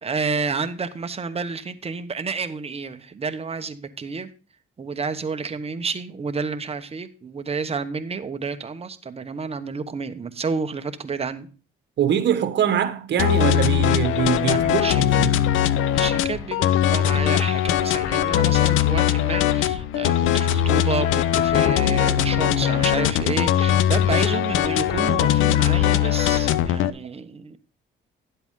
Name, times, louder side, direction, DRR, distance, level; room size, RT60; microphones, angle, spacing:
voice 1, 0.0-4.3 4.8-11.5 14.5-15.0 15.7-27.6, right 5 dB, 30° right, 1.1 m, -30 dB
voice 2, 12.0-14.9 15.2-15.3, right 9 dB, 60° right, 1.4 m, -23 dB
sound 1, 13.2-26.9, left 11 dB, 85° left, 0.6 m, -20 dB
11.0 x 8.1 x 3.7 m
cardioid pair, 90°, 20 cm